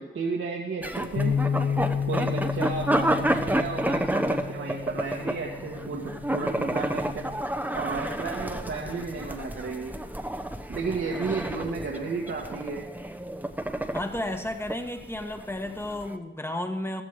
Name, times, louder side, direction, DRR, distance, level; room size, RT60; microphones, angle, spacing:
voice 1, 0.0-1.4 2.1-7.3 7.7-10.0 10.7-12.8, right 4 dB, 75° right, -2 dB, 1.8 m, -33 dB
sound 1, 0.8-16.1, right 1 dB, 10° right, 1.0 m, -30 dB
sound 2, 1.2-7.4, left 7 dB, 60° left, 0.7 m, -32 dB
voice 2, 13.9-17.0, left 1 dB, 10° left, 6 dB, 1.5 m, -32 dB
15.0 x 14.0 x 4.8 m, 1.1 s
wide cardioid pair, 120°, 21 cm